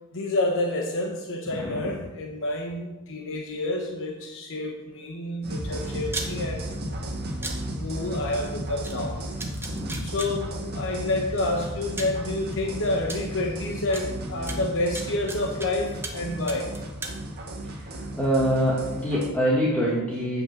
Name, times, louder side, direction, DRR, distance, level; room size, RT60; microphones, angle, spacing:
voice 1, 0.1-6.6 7.6-9.2 10.0-16.7, left 2 dB, 60° left, 2 dB, 1.0 m, -29 dB
voice 2, 1.5-1.9 9.6-10.0 18.1-20.4, equal, 5° left, -5 dB, 1.5 m, -25 dB
sound 1, 5.4-19.3, right 1 dB, 45° right, 1.6 m, -34 dB
sound 2, 6.1-6.3 7.4-7.5 8.8-8.9 9.4-10.3 11.4-11.5 12.0-12.2 13.1-13.2 13.9-14.0 14.5-15.7 16.0-16.2 16.5-17.1, right 2 dB, 10° right, 1.0 m, -34 dB
8.7 x 5.4 x 7.1 m, 1.1 s
head